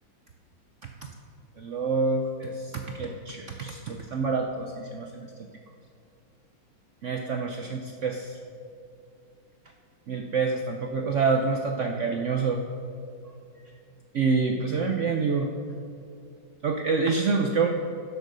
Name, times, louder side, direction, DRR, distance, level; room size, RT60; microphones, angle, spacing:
voice 1, 1.6-5.3 7.0-8.4 10.1-12.6 14.1-15.5 16.6-17.7, right 4 dB, 75° right, 3 dB, 0.6 m, -27 dB
11.0 x 6.8 x 6.6 m, 2.5 s
omnidirectional pair, 2.1 m